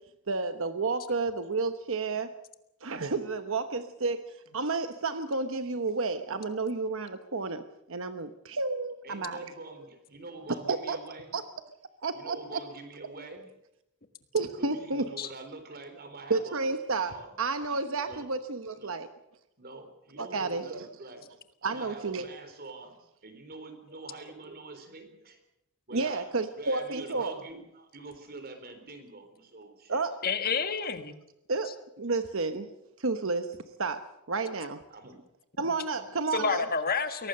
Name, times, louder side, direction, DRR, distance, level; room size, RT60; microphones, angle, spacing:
voice 1, 0.3-2.3 2.8-7.6 7.9-9.4 10.7-11.0 11.3-11.4 12.0-12.6 14.3-15.1 16.3-19.1 20.2-20.9 21.6-22.2 25.9-27.3 29.9-30.2 31.5-32.7 33.0-33.5 33.8-34.8 35.6-36.6, right 3 dB, 65° right, 9 dB, 1.1 m, -31 dB
voice 2, 8.3-8.6 9.0-11.4 12.1-13.5 14.5-16.7 17.0-17.4 18.1-18.3 18.8-19.0 19.6-21.2 21.6-22.9 23.2-25.4 25.9-30.0 34.9-35.2 35.9-36.2, right 3 dB, 45° right, 7 dB, 4.0 m, -45 dB
voice 3, 30.2-31.1 36.3-37.3, left 5 dB, 45° left, 9 dB, 1.6 m, -29 dB
23.0 x 18.5 x 6.7 m, 0.84 s
head